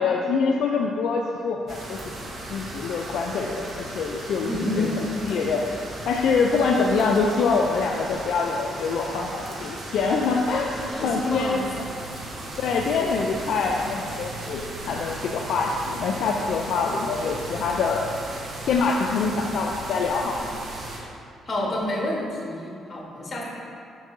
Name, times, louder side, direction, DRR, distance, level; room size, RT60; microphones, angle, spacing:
voice 1, 0.0-2.0 2.5-4.9 5.2-5.6 6.0-11.6 12.6-18.0 18.7-20.6, left 4 dB, 75° left, 1 dB, 0.4 m, -25 dB
sound 1, 1.7-21.0, right 2 dB, 50° right, 1.1 m, -36 dB
voice 2, 4.4-4.9 10.9-12.0 21.5-23.4, left 1 dB, 40° left, -2 dB, 1.3 m, -29 dB
5.3 x 5.2 x 3.7 m, 2.4 s
cardioid pair, 90°, 0 cm